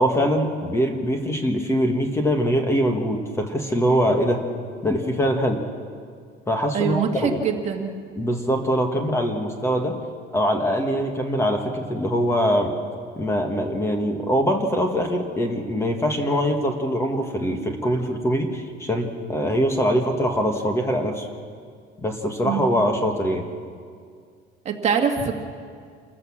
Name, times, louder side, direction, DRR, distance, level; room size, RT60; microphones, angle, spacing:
voice 1, 0.0-4.4 4.8-5.6 6.5-7.4 8.2-10.0 10.3-12.7 13.2-21.3 22.0-23.5, equal, 15° left, 4 dB, 1.6 m, -23 dB
voice 2, 6.7-7.9 22.4-22.7 24.7-25.4, right 6 dB, 35° right, 3 dB, 1.9 m, -24 dB
27.5 x 15.0 x 7.3 m, 2.1 s
cardioid pair, 160°, 19 cm